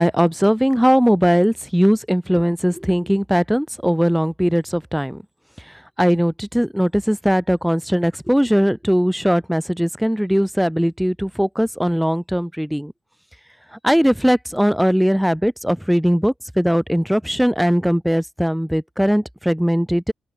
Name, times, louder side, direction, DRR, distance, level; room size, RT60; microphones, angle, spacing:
voice 1, 0.0-5.2 5.7-12.9 13.7-20.1, equal, ahead, 2.0 m, -19 dB
open air
cardioid pair, 90°, 0 cm